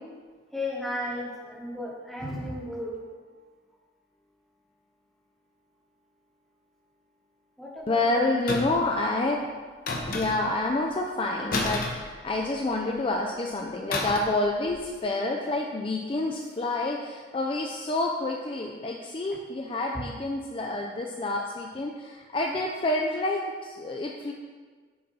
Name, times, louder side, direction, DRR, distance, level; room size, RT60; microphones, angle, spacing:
voice 1, 0.5-3.3 7.6-8.2, left 1 dB, ahead, -4 dB, 1.1 m, -34 dB
voice 2, 7.9-9.4 10.1-24.3, left 2 dB, 30° left, 1 dB, 0.4 m, -28 dB
sound 1, 8.5-8.9 9.9-10.6 11.5-12.7 13.9-14.4 14.7-14.9, left 2 dB, 50° left, 0.9 m, -31 dB
6.6 x 4.3 x 5.3 m, 1.5 s
head